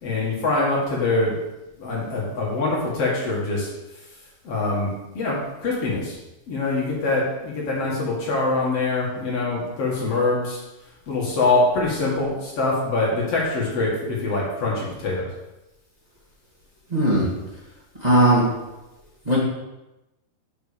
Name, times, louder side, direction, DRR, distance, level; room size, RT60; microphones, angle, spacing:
voice 1, 0.0-1.4 1.8-3.7 4.4-6.2 6.5-10.6 11.1-15.3, left 2 dB, 45° left, -4 dB, 2.3 m, -24 dB
voice 2, 16.9-17.3 18.0-18.4 19.2-19.4, right 1 dB, 25° right, -7 dB, 0.9 m, -17 dB
7.0 x 5.7 x 6.9 m, 0.99 s
omnidirectional pair, 4.6 m